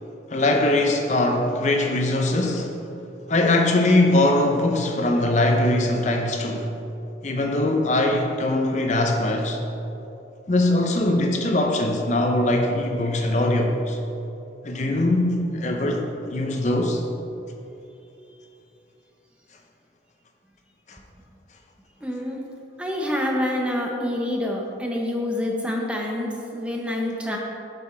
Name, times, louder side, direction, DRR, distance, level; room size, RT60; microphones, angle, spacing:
voice 1, 0.3-2.7 3.3-6.7 7.2-9.6 10.5-14.0 14.6-17.0 20.9-21.0, left 1 dB, 40° left, 2 dB, 0.6 m, -21 dB
voice 2, 22.0-22.4 22.8-27.4, left 1 dB, 5° right, 0 dB, 0.7 m, -27 dB
7.7 x 5.9 x 4.4 m, 2.8 s
head